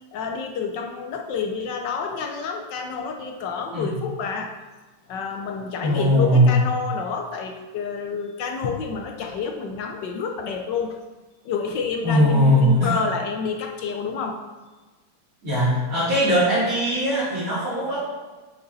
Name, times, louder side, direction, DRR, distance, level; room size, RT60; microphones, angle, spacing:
voice 1, 0.1-4.5 5.1-11.0 11.4-14.4, left 5 dB, 70° left, 4 dB, 1.2 m, -29 dB
voice 2, 5.8-6.5 12.0-12.9 15.4-18.0, equal, 40° right, -13 dB, 2.8 m, -19 dB
6.7 x 6.5 x 4.1 m, 1.3 s
omnidirectional pair, 2.3 m